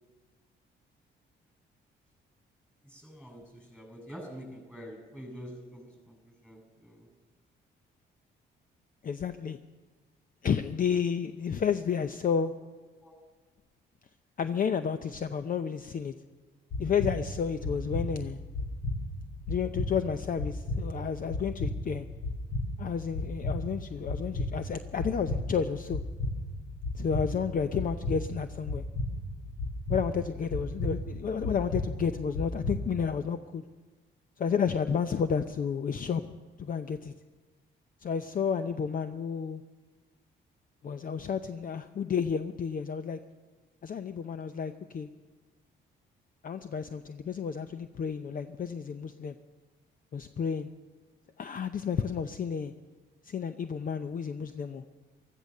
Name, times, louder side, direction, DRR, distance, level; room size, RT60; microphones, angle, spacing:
voice 1, 2.8-7.1 13.0-13.2, equal, 5° left, 2 dB, 7.4 m, -46 dB
voice 2, 9.0-9.6 10.4-12.5 14.4-16.1 16.8-18.4 19.5-22.1 22.8-26.0 26.9-28.9 29.9-33.6 34.4-37.2 38.0-39.6 40.8-43.2 43.8-45.1 46.4-49.3 50.1-50.7 51.4-52.7 53.2-54.8, left 7 dB, 45° left, 10 dB, 0.7 m, -31 dB
sound 1, 16.7-33.1, left 1 dB, 65° left, 3.2 m, -35 dB
15.5 x 14.0 x 6.6 m, 1.3 s
cardioid pair, 90°, 20 cm